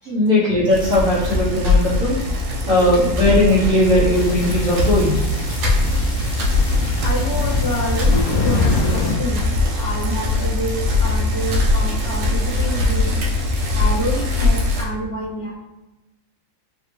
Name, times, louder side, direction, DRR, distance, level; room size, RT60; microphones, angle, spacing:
voice 1, 0.1-5.2, left 1 dB, 50° right, -11 dB, 1.4 m, -18 dB
Bicycle, 0.7-14.8, left 2 dB, 65° right, 1.1 m, -21 dB
sound 1, 4.1-9.2, left 3 dB, 80° left, 1.3 m, -26 dB
voice 2, 7.0-13.1 13.7-15.6, equal, 20° right, -13 dB, 1.1 m, -28 dB
3.4 x 2.7 x 3.3 m, 1.0 s
omnidirectional pair, 2.0 m